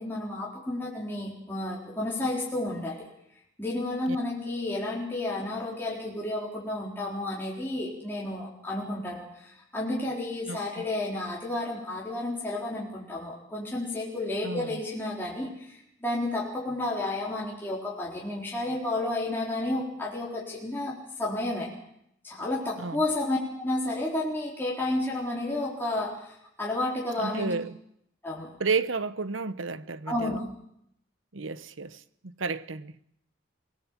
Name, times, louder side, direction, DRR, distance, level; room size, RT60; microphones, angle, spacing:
voice 1, 0.0-3.1 3.6-21.7 22.2-27.5 28.2-28.5 30.1-30.5, left 2 dB, 10° left, 4.0 m, -31 dB
voice 2, 10.5-10.8 14.4-14.8 22.8-23.0 27.2-27.8 28.6-30.4 31.3-32.9, right 4 dB, 85° right, 1.0 m, -32 dB
24.5 x 19.0 x 7.5 m
head